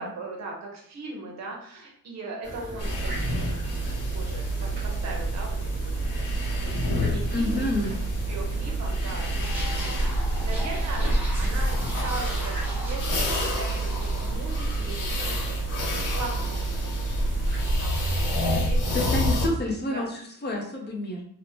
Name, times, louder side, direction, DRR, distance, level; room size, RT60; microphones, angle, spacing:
voice 1, 0.0-7.7 8.3-9.5 9.7-10.1 10.4-19.2 19.9-20.0, right 3 dB, 55° right, 0 dB, 0.8 m, -39 dB
sound 1, 2.4-17.7, equal, 35° right, 1.1 m, -39 dB
sound 2, 2.8-19.5, right 1 dB, 70° left, 0.7 m, -27 dB
voice 2, 7.3-7.9 18.9-21.2, left 2 dB, 35° left, 0 dB, 0.6 m, -28 dB
sound 3, 9.4-15.1 15.4-15.6, equal, 5° right, 0.7 m, -40 dB
2.9 x 2.1 x 2.7 m, 0.63 s
wide cardioid pair, 175°, 32 cm